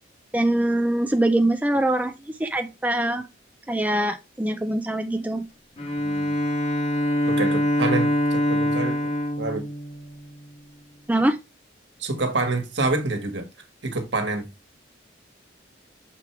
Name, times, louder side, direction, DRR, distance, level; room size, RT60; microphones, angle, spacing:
voice 1, 0.3-3.3 3.7-5.5 11.1-11.4, right 1 dB, 10° right, 0.4 m, -23 dB
Bowed string instrument, 5.8-10.6, equal, 35° left, 1.3 m, -24 dB
voice 2, 6.0-6.4 7.3-9.1 9.4-9.7 12.0-13.5 13.8-14.4, right 2 dB, 65° right, 1.7 m, -27 dB
6.8 x 4.6 x 3.3 m
head